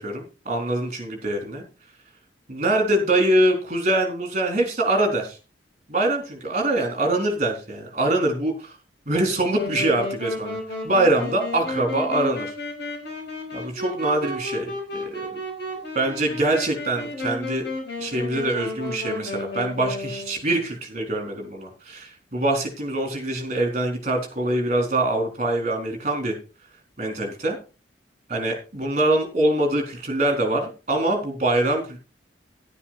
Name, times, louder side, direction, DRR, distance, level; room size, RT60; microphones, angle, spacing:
voice 1, 0.0-1.6 2.5-5.4 5.9-8.7 9.1-10.6 10.8-12.5 13.5-15.4 15.9-17.7 18.0-26.3 27.0-27.6 28.3-32.0, right 1 dB, 40° right, 3 dB, 4.3 m, -24 dB
Wind instrument woodwind instrument, 9.5-20.4, left 2 dB, 65° left, 6.2 m, -33 dB
11.5 x 10.0 x 4.4 m, 0.32 s
head